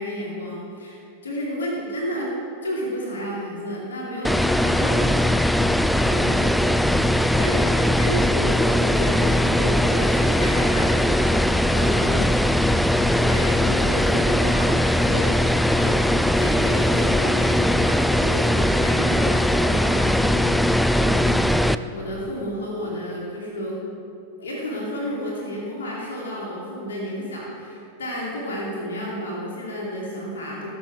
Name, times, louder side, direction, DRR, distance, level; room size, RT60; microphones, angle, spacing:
voice 1, 0.0-2.3 2.6-5.5 5.9-6.5 7.4-11.4 11.7-12.5 13.3-16.0 16.4-21.6 21.9-23.8 24.4-30.7, equal, 65° left, -4 dB, 2.5 m, -31 dB
sound 1, 4.2-21.7, left 1 dB, ahead, 0.4 m, -20 dB
19.5 x 7.4 x 4.7 m, 2.6 s
figure-of-eight pair, 90°, 0 cm